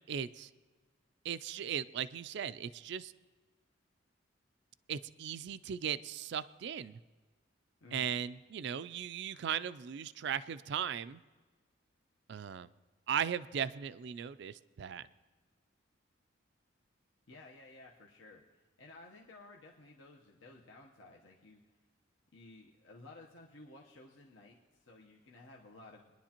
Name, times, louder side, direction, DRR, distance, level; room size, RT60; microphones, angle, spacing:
voice 1, 0.1-0.5 1.2-3.1 4.9-7.0 7.9-11.2 12.3-12.7 13.1-15.1, right 8 dB, 55° right, 16 dB, 0.3 m, -37 dB
voice 2, 7.8-8.1 17.3-21.8 22.3-26.1, left 2 dB, 70° left, -1 dB, 1.0 m, -55 dB
22.5 x 10.5 x 2.9 m, 1.3 s
head